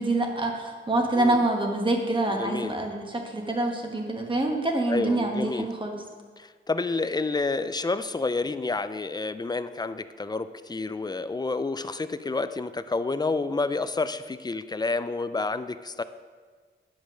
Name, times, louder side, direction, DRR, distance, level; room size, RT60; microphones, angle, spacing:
voice 1, 0.0-6.0, right 2 dB, 25° right, 1 dB, 1.2 m, -26 dB
voice 2, 1.2-1.5 2.3-2.8 4.9-5.7 6.4-16.0, left 3 dB, 20° left, 12 dB, 0.3 m, -29 dB
10.0 x 5.2 x 6.2 m, 1.5 s
wide cardioid pair, 145°, 20 cm